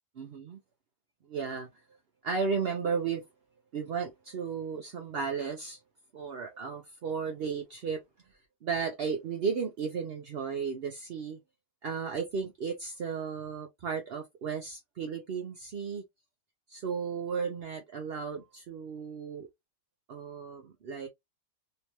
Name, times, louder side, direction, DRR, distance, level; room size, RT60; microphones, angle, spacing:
voice 1, 0.2-0.6 1.3-1.7 2.2-3.2 3.7-5.8 6.1-8.0 8.6-11.4 11.8-16.0 16.7-19.5 20.1-21.1, right 5 dB, 65° right, 0.6 m, -34 dB
3.3 x 2.8 x 2.9 m
omnidirectional pair, 1.7 m